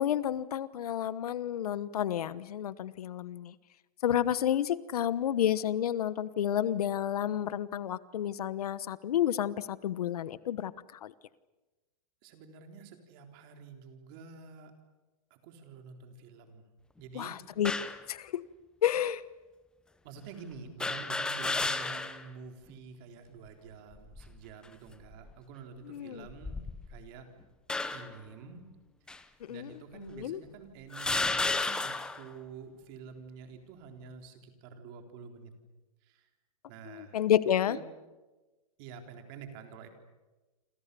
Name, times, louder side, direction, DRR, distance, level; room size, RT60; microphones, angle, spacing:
voice 1, 0.0-3.5 4.0-10.7 11.0-11.1 17.1-17.7 18.1-18.4 18.8-19.2 25.8-26.3 29.4-30.4 36.9-37.8, left 10 dB, 80° left, 17 dB, 1.2 m, -30 dB
voice 2, 12.2-14.7 15.3-16.6 17.0-17.4 20.0-27.3 27.9-28.6 29.5-35.5 36.1-36.3 36.7-37.2 37.7-37.8 38.8-39.9, right 5 dB, 35° right, 5 dB, 3.9 m, -48 dB
sound 1, 17.6-18.0 18.9-19.0 20.8-22.3 22.7-22.8 23.9-24.4 25.1-25.3 26.3-27.1 27.7-28.2 29.1-29.2 30.1-30.2 30.9-32.3, left 3 dB, 5° left, 0.8 m, -33 dB
28.5 x 26.5 x 7.0 m, 1.1 s
supercardioid pair, 170°, 19 cm